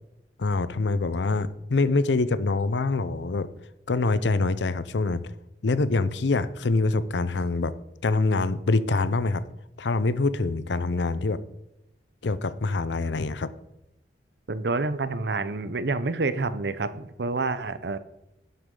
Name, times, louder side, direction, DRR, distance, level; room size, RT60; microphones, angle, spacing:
voice 1, 0.4-3.5 3.9-5.3 5.6-7.7 8.0-9.4 9.8-11.4 12.2-13.5, left 3 dB, 85° left, 0.6 m, -25 dB
voice 2, 14.5-18.0, right 3 dB, 65° right, 0.7 m, -28 dB
11.5 x 7.9 x 3.8 m
head